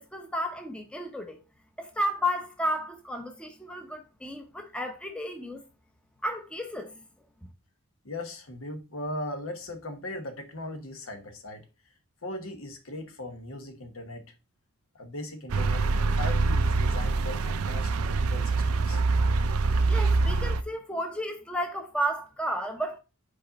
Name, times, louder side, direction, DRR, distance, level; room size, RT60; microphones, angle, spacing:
voice 1, 0.0-1.4 1.8-5.6 6.2-7.0 19.9-23.0, equal, 5° left, 0.8 m, -32 dB
voice 2, 8.0-11.6 12.2-14.2 14.9-19.0, left 1 dB, 70° left, 1.2 m, -39 dB
sound 1, 15.5-20.6, right 3 dB, 90° right, 0.5 m, -25 dB
5.3 x 4.2 x 5.1 m
head